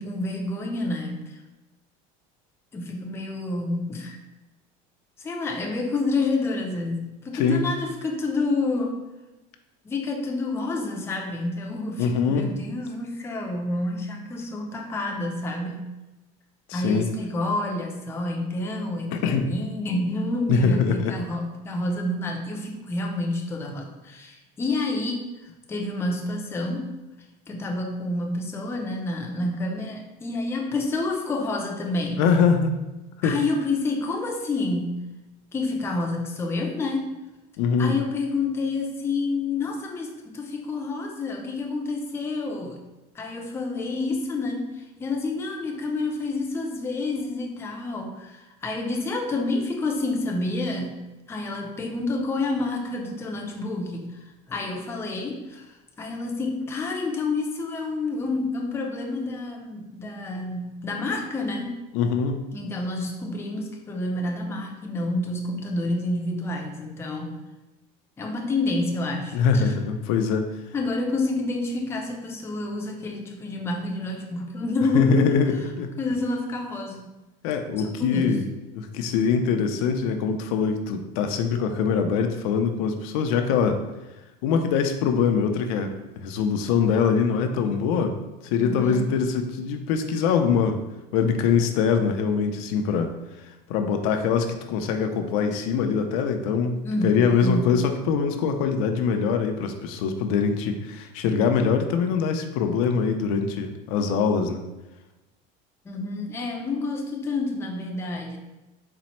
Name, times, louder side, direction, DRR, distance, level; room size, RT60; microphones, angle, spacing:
voice 1, 0.0-1.4 2.7-4.2 5.2-9.0 9.8-15.9 16.7-26.9 27.5-32.2 33.2-35.0 35.5-37.1 37.8-42.8 43.1-51.0 51.3-61.8 62.5-67.4 68.2-69.7 70.7-75.4 75.6-75.7 76.0-77.1 77.8-78.4 88.6-89.1 96.8-97.7 105.8-108.4, left 2 dB, 15° left, 1 dB, 0.5 m, -29 dB
voice 2, 7.3-7.7 12.0-12.5 16.7-17.1 19.1-19.5 20.5-21.2 32.2-32.8 33.2-33.4 37.6-38.0 61.9-62.4 69.3-70.5 74.9-75.9 77.4-78.4 78.8-83.8 84.4-88.1 88.4-90.8 91.1-93.1 93.4-96.8 97.0-104.6, left 6 dB, 75° left, 6 dB, 0.5 m, -23 dB
4.1 x 2.0 x 4.2 m, 1.0 s
cardioid pair, 140°, 18 cm